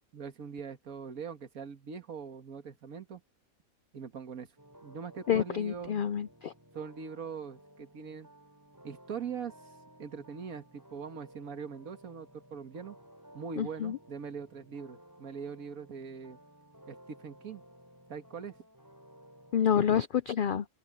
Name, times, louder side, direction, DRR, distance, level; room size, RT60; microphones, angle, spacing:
voice 1, 0.0-3.2 3.9-4.5 4.8-6.1 6.7-8.3 8.8-9.5 10.0-13.0 13.3-16.4 16.9-17.6 18.1-18.6, right 6 dB, 80° right, 2.0 m, -42 dB
sound 1, 4.6-19.8, right 1 dB, 15° right, 5.0 m, -56 dB
voice 2, 5.3-6.5 13.6-14.0 19.5-20.6, left 8 dB, 80° left, 0.4 m, -28 dB
open air
omnidirectional pair, 1.5 m